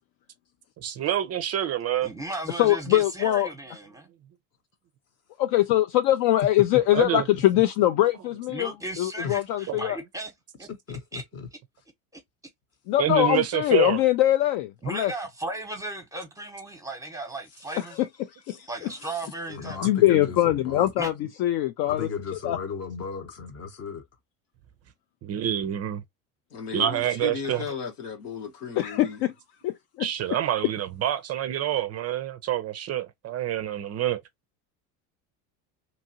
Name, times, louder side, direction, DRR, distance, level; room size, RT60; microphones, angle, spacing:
voice 1, 0.8-2.1 6.9-7.3 9.7-9.8 13.0-14.0 25.2-26.0 26.7-27.6 30.0-34.2, right 11 dB, 35° right, 0.4 m, -27 dB
voice 2, 2.0-4.1 8.5-10.3 10.6-11.2 12.1-12.2 14.8-18.0 18.7-19.8 21.0-21.1 27.4-27.7, right 2 dB, 5° right, 0.9 m, -36 dB
voice 3, 2.6-3.5 5.4-8.7 9.0-10.0 12.9-15.1 18.5-18.6 19.8-21.1 21.4-22.1 22.4-22.6 28.8-29.3 29.6-29.7, left 14 dB, 55° left, 0.5 m, -22 dB
voice 4, 10.7-11.5 18.5-18.7 19.0-19.2 19.5-20.9 21.9-24.1, left 6 dB, 35° left, 0.9 m, -36 dB
voice 5, 26.5-29.2, left 6 dB, 85° left, 1.3 m, -35 dB
2.9 x 2.5 x 2.7 m
hypercardioid pair, 90°, 45 cm